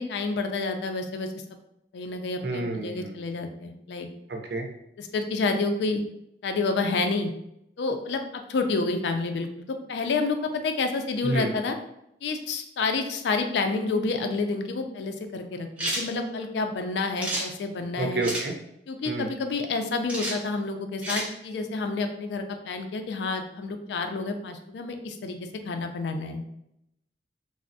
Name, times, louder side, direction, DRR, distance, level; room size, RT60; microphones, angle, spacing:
voice 1, 0.0-1.3 1.9-4.1 5.0-6.0 6.4-7.3 7.8-11.8 12.2-18.2 18.9-25.4 25.6-26.5, left 3 dB, 70° left, 6 dB, 0.3 m, -29 dB
voice 2, 2.4-3.3 4.3-4.6 11.2-11.5 18.0-18.5 19.1-19.3, right 2 dB, 65° right, 1 dB, 0.5 m, -29 dB
sound 1, 15.8-16.1 17.2-17.5 18.2-18.5 20.1-20.4 21.0-21.3, right 1 dB, 10° right, 0.5 m, -30 dB
3.3 x 2.0 x 2.6 m, 0.80 s
head